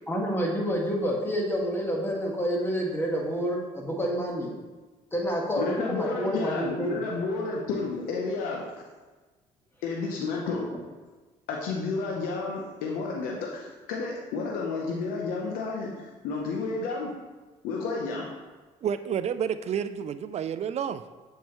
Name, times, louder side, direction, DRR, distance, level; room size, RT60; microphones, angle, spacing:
voice 1, 0.1-4.5 5.1-7.0, equal, 15° left, -1 dB, 1.6 m, -28 dB
voice 2, 5.6-8.8 9.8-10.7 11.5-17.1 17.6-18.3, left 4 dB, 85° left, -1 dB, 0.7 m, -31 dB
voice 3, 18.8-21.0, right 8 dB, 50° right, 12 dB, 0.4 m, -30 dB
7.2 x 4.5 x 3.1 m, 1.2 s
supercardioid pair, 75°, 14 cm